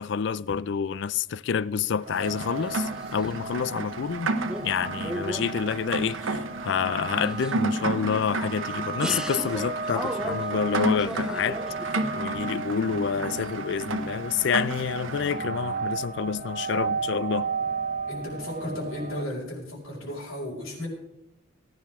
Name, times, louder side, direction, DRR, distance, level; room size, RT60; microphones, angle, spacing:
voice 1, 0.0-4.3 4.6-17.5, left 6 dB, 55° left, 0.4 m, -28 dB
sound 1, 2.1-19.3, right 4 dB, 40° right, 0.8 m, -35 dB
Rain, 2.1-15.4, right 2 dB, 75° right, 1.0 m, -33 dB
sound 2, 2.6-3.6 4.0-4.8 5.0-6.6 7.1-8.6 9.0-12.1, equal, 5° right, 0.5 m, -37 dB
voice 2, 18.1-20.9, left 1 dB, 85° left, 5.5 m, -34 dB
19.0 x 10.5 x 3.6 m
head